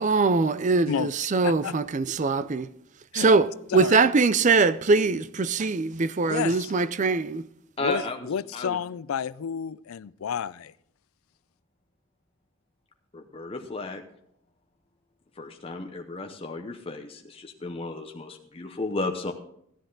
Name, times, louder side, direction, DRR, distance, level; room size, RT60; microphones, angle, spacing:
voice 1, 0.0-2.7 3.1-7.5, right 4 dB, 35° right, 0.5 m, -22 dB
voice 2, 1.4-1.8 3.1-3.3 3.7-4.0 6.2-6.7 7.8-10.7, left 7 dB, 85° left, 0.4 m, -31 dB
voice 3, 7.8-8.2 8.5-8.8 13.1-14.0 15.4-19.3, left 2 dB, 25° left, 0.8 m, -33 dB
14.5 x 10.0 x 3.9 m
head